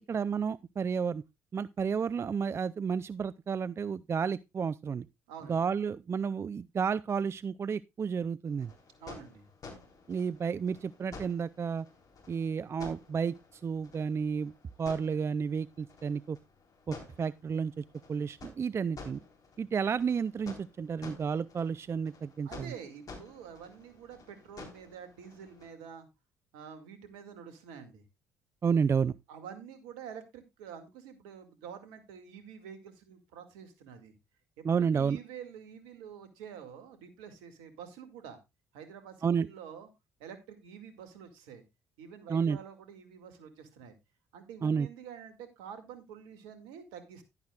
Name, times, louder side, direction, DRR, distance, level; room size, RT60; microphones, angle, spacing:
voice 1, 0.1-1.2 1.5-5.1 5.5-8.7 10.1-11.9 12.3-14.5 14.8-16.4 16.9-17.8 18.1-19.2 19.6-22.7 28.6-29.1 34.6-35.2 39.2-39.5 42.3-42.6 44.6-44.9, right 6 dB, 35° right, 0.4 m, -31 dB
voice 2, 5.3-5.6 9.0-9.5 22.4-26.1 26.5-28.0 29.3-34.1 34.8-38.4 38.7-39.9 40.2-41.6 42.0-43.9 44.3-47.2, right 7 dB, 75° right, 2.1 m, -47 dB
sound 1, 8.5-25.7, left 3 dB, 50° left, 3.8 m, -52 dB
11.5 x 10.5 x 2.3 m
hypercardioid pair, 55°, 8 cm